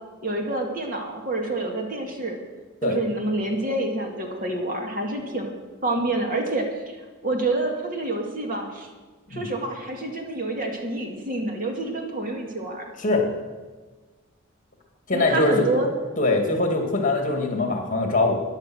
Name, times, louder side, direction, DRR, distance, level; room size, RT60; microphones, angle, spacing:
voice 1, 0.2-2.4 2.8-5.5 5.8-6.7 7.2-8.9 9.3-12.9 15.1-15.9, right 2 dB, 45° right, 2 dB, 2.1 m, -27 dB
voice 2, 15.1-15.7 16.2-18.3, left 2 dB, 40° left, 3 dB, 2.4 m, -22 dB
14.0 x 10.5 x 6.3 m, 1.3 s
head